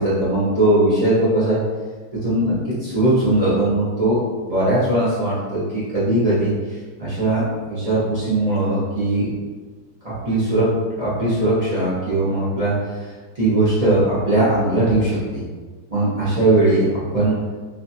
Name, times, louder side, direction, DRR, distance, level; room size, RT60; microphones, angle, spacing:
voice 1, 0.0-1.6 2.2-9.3 10.0-10.7 11.0-15.4 15.9-17.3, right 1 dB, 40° right, -11 dB, 0.5 m, -20 dB
2.7 x 2.4 x 2.6 m, 1.4 s
omnidirectional pair, 1.7 m